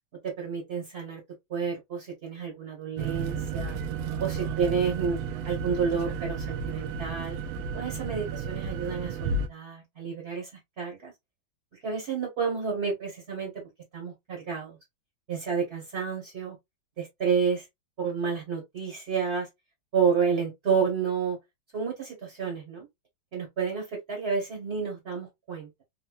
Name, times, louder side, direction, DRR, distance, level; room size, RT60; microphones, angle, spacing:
voice 1, 0.2-1.2 1.5-3.8 4.2-5.2 5.4-7.4 7.7-10.5 10.8-11.1 11.8-14.8 15.3-16.6 17.0-17.6 18.0-19.5 19.9-21.4 21.7-22.9 23.3-25.7, right 6 dB, 35° right, 1.4 m, -30 dB
sound 1, 3.0-9.5, right 5 dB, 90° right, 1.4 m, -32 dB
4.1 x 2.6 x 2.4 m
omnidirectional pair, 2.2 m